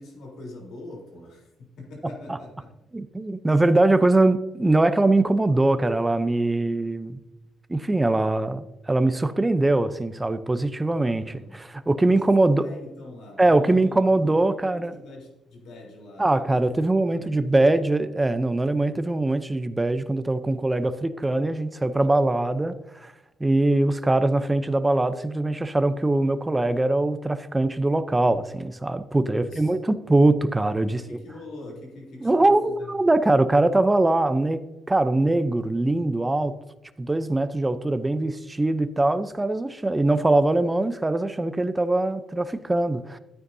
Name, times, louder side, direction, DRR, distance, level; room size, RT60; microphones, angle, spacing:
voice 1, 0.0-2.7 11.2-11.6 12.4-16.8 17.1-17.9 29.2-29.8 30.8-33.1, left 1 dB, 80° left, -1 dB, 3.6 m, -43 dB
voice 2, 2.9-7.2 7.7-12.6 13.4-14.9 16.2-22.7 23.0-23.1 23.4-31.0 32.2-32.6 32.9-34.6 34.9-36.5 37.0-43.2, right 2 dB, 15° right, 12 dB, 0.6 m, -22 dB
13.0 x 9.3 x 2.7 m, 0.98 s
cardioid pair, 90°, 0 cm